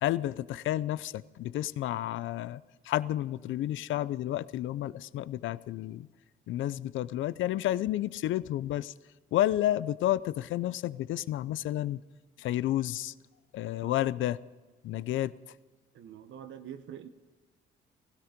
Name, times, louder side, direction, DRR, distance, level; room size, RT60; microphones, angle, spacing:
voice 1, 0.0-6.1 6.5-8.9 9.3-12.0 12.4-13.1 13.5-14.4 14.8-15.3, left 13 dB, 80° left, 18 dB, 0.6 m, -31 dB
voice 2, 15.9-17.1, right 9 dB, 75° right, 10 dB, 1.2 m, -45 dB
16.5 x 16.5 x 5.2 m, 1.3 s
cardioid pair, 90°, 20 cm